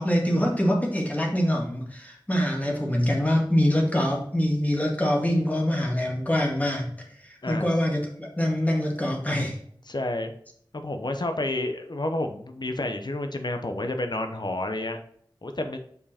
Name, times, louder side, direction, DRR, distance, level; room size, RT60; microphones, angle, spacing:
voice 1, 0.0-6.9 7.2-9.6, equal, 20° left, -1 dB, 1.9 m, -24 dB
voice 2, 9.9-10.3 10.7-15.0 15.4-15.8, left 2 dB, 60° left, 6 dB, 0.7 m, -30 dB
5.4 x 4.8 x 4.2 m, 0.65 s
wide cardioid pair, 55°, 8 cm